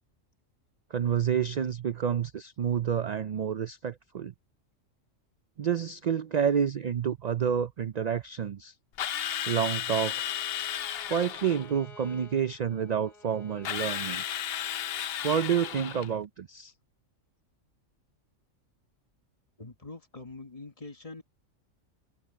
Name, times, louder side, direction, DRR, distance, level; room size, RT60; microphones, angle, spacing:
voice 1, 0.9-4.3 5.6-8.7 9.4-10.4 11.1-14.2 15.2-16.7, right 8 dB, 65° right, 0.4 m, -29 dB
Drill, 9.0-11.7 13.6-16.1, left 10 dB, 60° left, 0.7 m, -34 dB
Bowed string instrument, 10.1-15.1, left 2 dB, 85° left, 3.6 m, -53 dB
voice 2, 19.6-21.2, left 3 dB, 30° left, 1.4 m, -44 dB
omnidirectional pair, 1.4 m